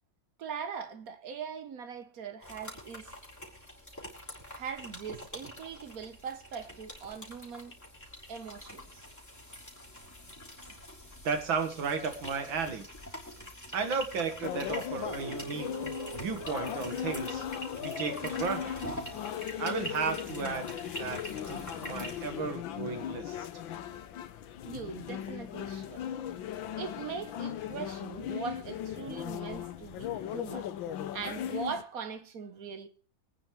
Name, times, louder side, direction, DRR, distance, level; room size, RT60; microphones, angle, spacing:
voice 1, 0.4-3.1 4.5-7.7 8.3-9.1 22.0-22.1 24.6-30.7 31.1-32.9, right 6 dB, 55° right, 1.3 m, -41 dB
sound 1, 2.4-22.3, equal, 10° left, 3.2 m, -45 dB
voice 2, 11.2-12.9 13.7-15.7 16.1-17.4 17.8-18.8 19.6-20.7 21.0-21.2 21.5-23.5, right 5 dB, 85° right, 2.3 m, -34 dB
sound 2, 14.4-31.8, left 10 dB, 80° left, 1.6 m, -38 dB
sound 3, 15.1-23.3, right 6 dB, 35° left, 3.4 m, -48 dB
23.5 x 9.2 x 3.2 m
omnidirectional pair, 2.1 m